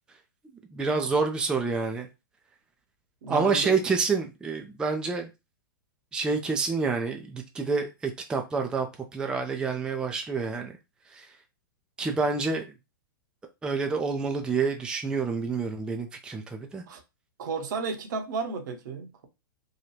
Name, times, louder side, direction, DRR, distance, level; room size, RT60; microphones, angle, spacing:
voice 1, 0.7-2.1 3.3-5.3 6.1-8.9 9.1-10.7 11.1-11.3 12.0-12.6 13.6-16.8, right 4 dB, 5° right, 0.4 m, -28 dB
voice 2, 3.2-3.7 16.9-17.0 17.4-19.3, right 5 dB, 55° right, 0.8 m, -33 dB
2.8 x 2.3 x 3.0 m
figure-of-eight pair, 105°, 12 cm